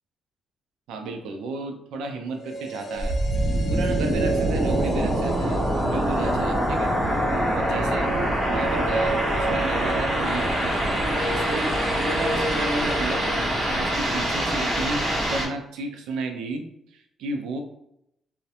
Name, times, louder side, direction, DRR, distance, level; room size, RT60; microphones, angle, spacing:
voice 1, 0.9-3.2 3.7-6.9 7.5-13.3 13.5-17.6, right 2 dB, 85° right, 5 dB, 0.4 m, -33 dB
sound 1, 2.3-14.5 14.7-14.8, right 1 dB, 50° left, 0.4 m, -33 dB
sound 2, 3.0-15.5, right 1 dB, 35° right, 1.0 m, -24 dB
2.7 x 2.1 x 2.4 m, 0.77 s
cardioid pair, 90°, 0 cm